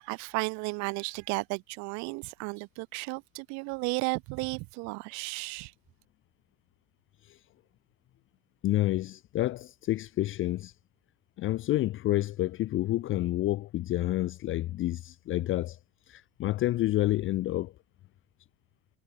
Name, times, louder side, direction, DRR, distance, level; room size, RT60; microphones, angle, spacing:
voice 1, 0.0-5.7, right 30 dB, 65° right, 0.6 m, -34 dB
voice 2, 8.6-10.7 11.4-15.8 16.1-17.7, left 15 dB, 40° left, 0.6 m, -29 dB
supercardioid pair, 115°, 31 cm